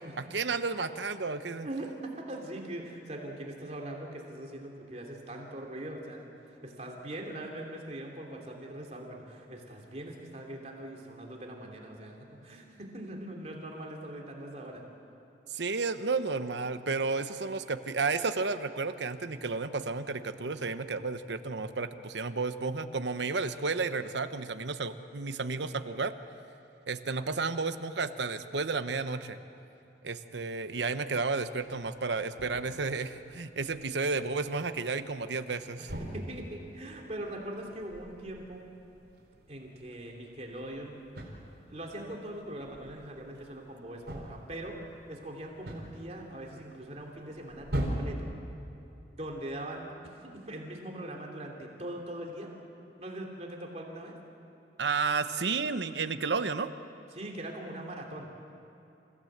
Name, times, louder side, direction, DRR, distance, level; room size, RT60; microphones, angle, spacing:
voice 1, 0.3-1.7 15.5-26.1 26.9-29.4 30.0-35.9 54.8-56.7, right 4 dB, 80° right, 10 dB, 1.0 m, -32 dB
voice 2, 1.6-14.8 35.8-38.7 39.5-41.0 41.7-44.8 45.1-48.3 49.1-52.5 53.0-54.1 57.1-58.3, right 1 dB, 35° right, 0 dB, 2.9 m, -41 dB
sound 1, 31.6-48.0, equal, 65° right, 4.4 m, -43 dB
28.5 x 16.5 x 8.0 m, 2.9 s
head